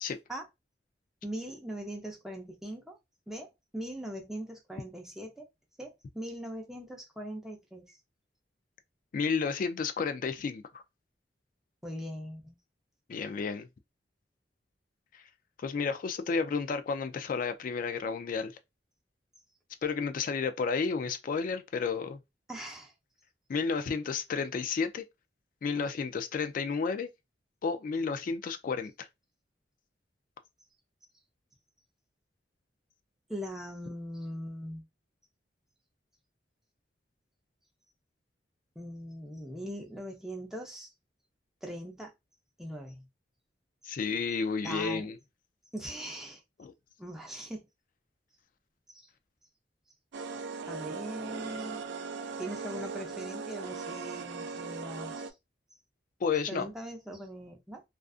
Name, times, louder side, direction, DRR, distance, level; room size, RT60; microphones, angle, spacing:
voice 1, 1.2-3.0 3.3-5.5 5.8-8.0 11.8-12.6 22.5-22.9 33.3-34.8 38.8-40.9 41.6-42.1 42.6-43.0 44.6-45.1 45.7-46.4 47.0-47.7 50.2-50.3 50.7-51.8 52.4-55.3 56.5-57.8, equal, 5° right, 0.6 m, -40 dB
voice 2, 9.1-10.8 13.1-13.7 15.1-15.2 15.6-18.5 19.8-22.2 23.5-25.0 25.6-27.1 27.6-29.1 43.8-45.2 46.6-46.7 56.2-56.7, left 5 dB, 50° left, 0.3 m, -31 dB
sound 1, 50.1-55.3, right 5 dB, 80° right, 0.3 m, -39 dB
2.4 x 2.4 x 2.4 m
head